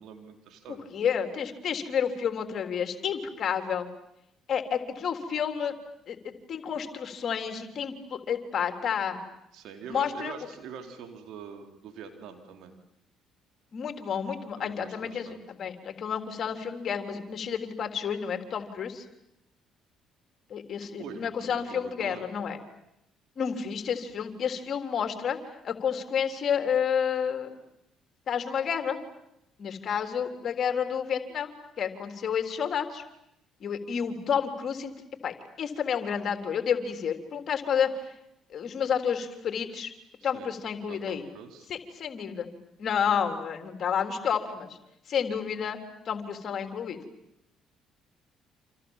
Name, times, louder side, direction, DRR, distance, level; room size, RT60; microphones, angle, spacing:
voice 1, 0.0-0.9 9.5-12.7 14.6-15.4 21.0-22.2 40.2-40.5 40.9-41.7, right 7 dB, 65° right, 4 dB, 4.2 m, -44 dB
voice 2, 0.9-3.9 4.5-5.7 6.1-9.2 9.9-10.3 13.7-19.0 20.5-22.6 23.4-25.4 25.6-27.5 28.3-29.0 29.6-33.0 33.6-34.9 35.2-37.9 38.5-39.9 40.2-41.2 41.7-42.5 42.8-44.7 45.1-45.8 46.1-47.0, left 7 dB, 55° left, 6 dB, 3.7 m, -30 dB
29.0 x 27.5 x 7.4 m, 0.80 s
hypercardioid pair, 55°, 0 cm